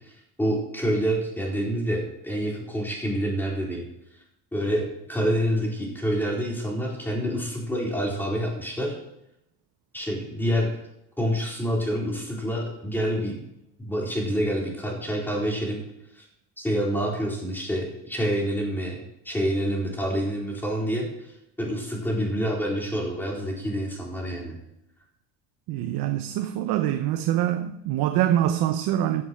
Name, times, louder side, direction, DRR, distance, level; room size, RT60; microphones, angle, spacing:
voice 1, 0.4-3.9 4.5-4.8 5.1-8.9 9.9-10.8 11.2-13.4 13.8-15.8 16.1-16.3 16.6-19.0 19.2-21.3 21.6-24.5, equal, 5° left, 4.2 m, -27 dB
voice 2, 25.7-29.2, right 12 dB, 70° right, 0.9 m, -24 dB
15.0 x 7.7 x 4.7 m
cardioid pair, 145°, 38 cm